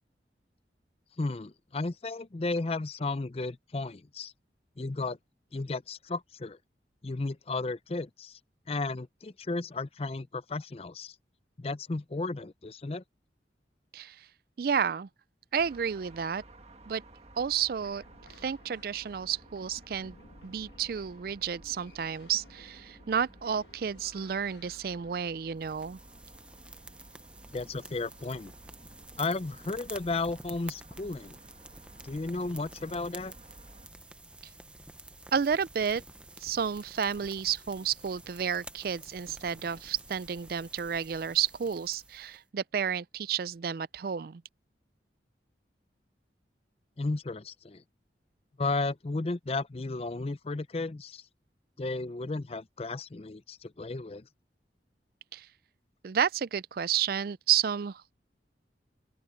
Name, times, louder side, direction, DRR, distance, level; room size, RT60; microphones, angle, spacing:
voice 1, 1.2-4.3 4.8-5.2 5.5-6.6 7.0-8.4 8.7-11.1 11.6-13.0 27.5-28.5 29.2-31.4 32.0-33.3 47.0-47.8 48.6-51.2 51.8-54.2, left 3 dB, 35° left, 0.5 m, -34 dB
voice 2, 13.9-14.3 14.6-15.1 15.5-16.4 16.9-17.0 17.4-18.0 18.4-20.1 20.4-26.0 35.3-36.0 36.4-44.4 55.3-55.5 56.0-58.1, right 7 dB, 55° right, 0.4 m, -31 dB
sound 1, 15.6-33.9, right 1 dB, 35° right, 1.6 m, -55 dB
sound 2, 17.7-25.3, left 2 dB, 75° left, 1.7 m, -57 dB
sound 3, 25.6-42.4, right 2 dB, 5° right, 0.6 m, -50 dB
open air
head